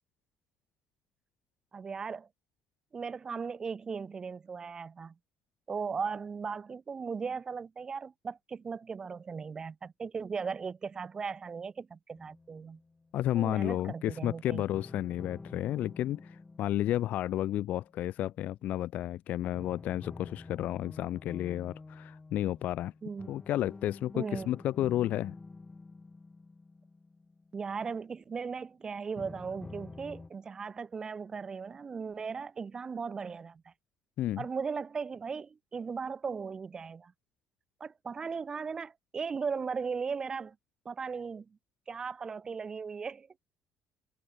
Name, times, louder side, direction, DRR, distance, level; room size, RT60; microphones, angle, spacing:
voice 1, 1.7-2.3 2.9-5.1 5.7-12.8 13.3-14.7 23.0-23.4 24.1-24.5 27.5-33.7 34.4-37.1 37.8-40.6 40.9-41.5 41.9-43.3, right 5 dB, 20° right, 1.9 m, -37 dB
sound 1, 12.1-13.3 14.7-18.7 19.6-28.4 29.2-30.3, left 3 dB, 10° left, 4.4 m, -49 dB
voice 2, 13.1-22.9 23.3-25.3 34.2-34.4, left 13 dB, 45° left, 0.6 m, -32 dB
cardioid pair, 180°, 4 cm